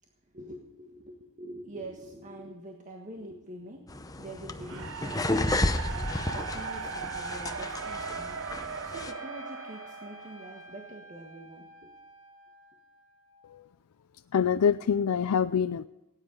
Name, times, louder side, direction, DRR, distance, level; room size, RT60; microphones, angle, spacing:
voice 1, 0.3-8.4 8.8-11.9, right 1 dB, 35° right, 1 dB, 1.5 m, -45 dB
sound 1, 3.9-9.1, left 2 dB, 15° left, 0.7 m, -32 dB
sound 2, 4.7-10.8, right 5 dB, 65° right, 0.7 m, -38 dB
Trumpet, 8.9-13.6, equal, 60° left, 1.8 m, -51 dB
voice 2, 14.3-15.8, left 7 dB, 90° left, 12 dB, 0.4 m, -25 dB
17.5 x 9.9 x 5.4 m, 0.99 s
head